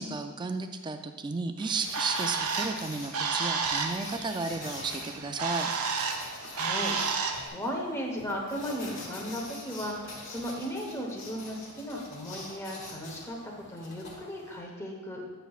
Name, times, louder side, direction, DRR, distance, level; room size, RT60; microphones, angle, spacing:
voice 1, 0.0-5.7, right 3 dB, 20° right, 7 dB, 0.3 m, -33 dB
Bird, 1.6-7.5, right 5 dB, 75° right, 0.7 m, -32 dB
sound 1, 1.8-14.6, left 2 dB, 55° left, 1.5 m, -45 dB
voice 2, 6.2-15.2, equal, 10° left, -1 dB, 0.9 m, -36 dB
9.1 x 6.7 x 2.4 m, 1.4 s
head